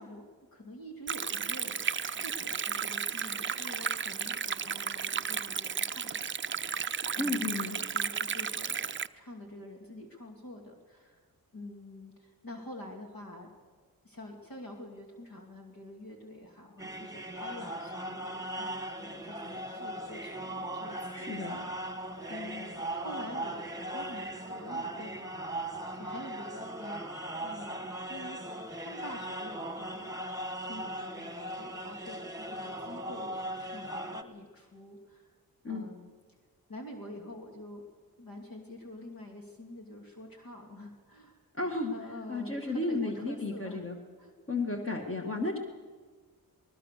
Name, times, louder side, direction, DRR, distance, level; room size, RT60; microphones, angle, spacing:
voice 1, 0.0-1.8 2.1-6.6 7.1-11.2 11.5-13.5 14.0-21.5 22.3-25.4 25.9-27.1 27.4-30.2 30.6-35.3 35.6-36.1 36.7-37.8 38.2-41.4 41.9-43.8 44.2-44.3, left 1 dB, 65° left, 1 dB, 2.8 m, -47 dB
Stream, 1.1-9.1, right 6 dB, 30° right, 0.5 m, -34 dB
voice 2, 7.2-7.8 21.1-21.6 35.6-35.9 41.5-41.9 42.3-44.0 44.5-45.6, left 2 dB, 35° left, 1 dB, 2.0 m, -33 dB
sound 1, 16.8-34.2, right 1 dB, 10° right, 1.5 m, -39 dB
20.0 x 19.5 x 6.8 m, 1.5 s
wide cardioid pair, 85°, 37 cm